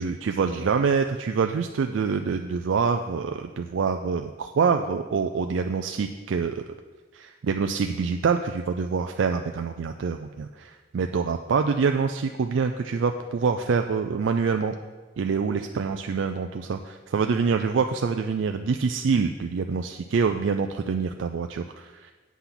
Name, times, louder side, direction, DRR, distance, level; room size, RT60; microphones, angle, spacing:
voice 1, 0.0-6.6 7.1-14.7 15.2-22.1, right 5 dB, 70° right, 6 dB, 0.4 m, -26 dB
8.3 x 5.8 x 5.9 m, 1.3 s
head